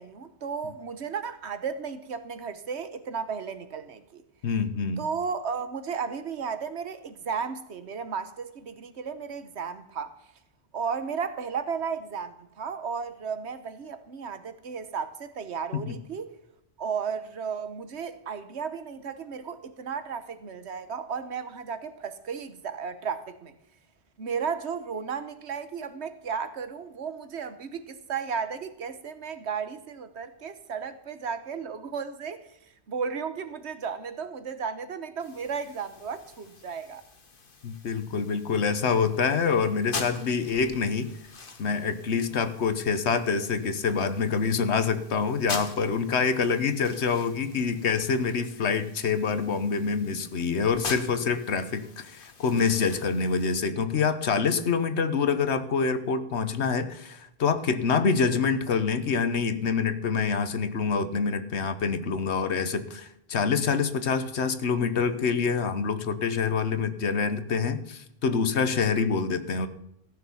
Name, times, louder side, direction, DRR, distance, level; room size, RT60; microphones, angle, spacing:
voice 1, 0.0-4.2 5.0-10.1 10.7-16.3 16.8-23.5 24.2-32.6 32.9-37.0, right 6 dB, 85° right, 1.3 m, -34 dB
voice 2, 4.4-5.0 15.9-16.0 37.6-41.1 41.6-69.7, left 5 dB, 90° left, 1.3 m, -26 dB
sound 1, 35.2-53.6, left 4 dB, 55° left, 1.5 m, -44 dB
15.0 x 7.0 x 7.0 m
omnidirectional pair, 1.1 m